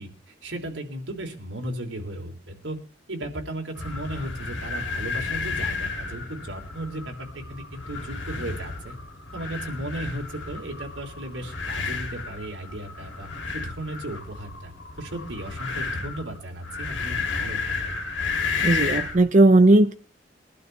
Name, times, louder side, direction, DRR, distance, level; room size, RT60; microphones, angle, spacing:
voice 1, 0.0-2.8 3.1-9.0 9.3-17.9, right 1 dB, 90° right, 3.2 m, -35 dB
sound 1, 3.7-19.2, left 4 dB, 85° left, 2.6 m, -32 dB
voice 2, 18.6-19.9, right 2 dB, 40° right, 0.6 m, -16 dB
22.0 x 12.0 x 3.4 m
head